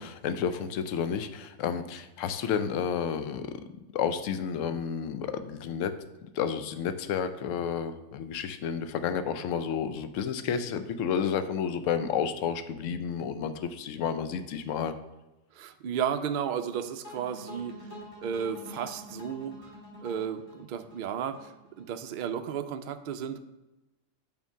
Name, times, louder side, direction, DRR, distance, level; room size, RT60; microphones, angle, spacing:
voice 1, 0.0-3.5 3.9-5.9 6.3-14.9, left 7 dB, 75° left, 10 dB, 0.9 m, -31 dB
voice 2, 15.5-17.7 18.2-19.5 20.0-23.4, right 8 dB, 70° right, 9 dB, 0.4 m, -33 dB
sound 1, 17.0-22.1, equal, 60° left, 1.9 m, -46 dB
5.8 x 4.4 x 5.4 m, 1.0 s
omnidirectional pair, 1.3 m